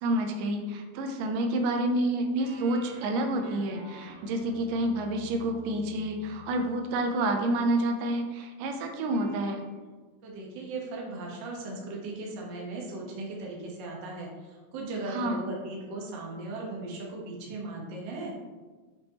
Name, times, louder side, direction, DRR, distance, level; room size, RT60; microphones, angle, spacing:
voice 1, 0.0-9.6 15.1-15.4, right 1 dB, 90° right, 5 dB, 2.3 m, -29 dB
sound 1, 2.4-7.6 9.1-9.8, left 3 dB, 70° right, 2.1 m, -50 dB
voice 2, 10.2-18.4, right 2 dB, 55° right, -2 dB, 1.3 m, -37 dB
7.1 x 5.2 x 3.0 m, 1.3 s
omnidirectional pair, 3.8 m